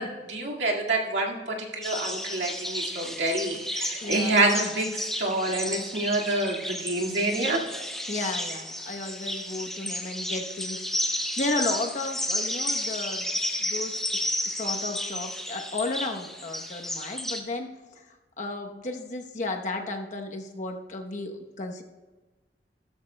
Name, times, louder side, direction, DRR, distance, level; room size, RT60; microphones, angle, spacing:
voice 1, 0.0-7.6, right 2 dB, 90° right, -2 dB, 2.0 m, -27 dB
sound 1, 1.8-17.4, left 1 dB, ahead, 0.8 m, -32 dB
voice 2, 4.0-4.3 8.1-10.9 11.4-17.7 18.0-18.1 18.4-21.8, left 2 dB, 45° left, 3 dB, 0.9 m, -33 dB
16.0 x 13.0 x 2.2 m, 1.3 s
head